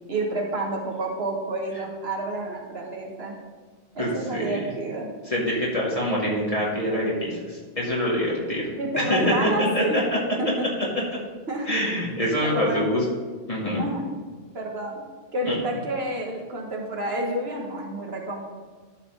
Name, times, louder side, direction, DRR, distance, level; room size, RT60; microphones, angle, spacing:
voice 1, 0.1-3.4 3.9-5.1 8.8-10.0 10.4-10.7 11.5-11.7 12.4-12.8 13.8-14.0 14.5-15.0 15.3-18.4, right 1 dB, 70° right, -1 dB, 1.6 m, -29 dB
voice 2, 5.3-8.7 9.1-10.2 11.7-13.0 13.5-13.9 15.4-15.6, equal, 35° left, -5 dB, 2.4 m, -25 dB
12.5 x 4.2 x 5.5 m, 1.5 s
omnidirectional pair, 1.1 m